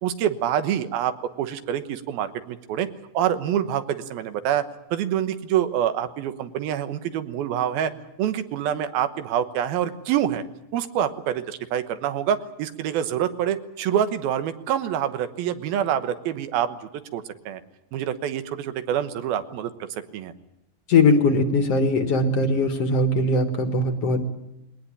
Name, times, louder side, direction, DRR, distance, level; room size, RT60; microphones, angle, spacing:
voice 1, 0.0-2.9 3.1-4.7 4.9-7.9 8.2-10.4 10.7-17.6 17.9-19.7 20.1-20.3, right 10 dB, 90° right, 10 dB, 3.1 m, -26 dB
voice 2, 20.9-24.3, left 2 dB, 50° left, 6 dB, 2.2 m, -20 dB
20.0 x 19.5 x 10.0 m, 0.90 s
omnidirectional pair, 4.1 m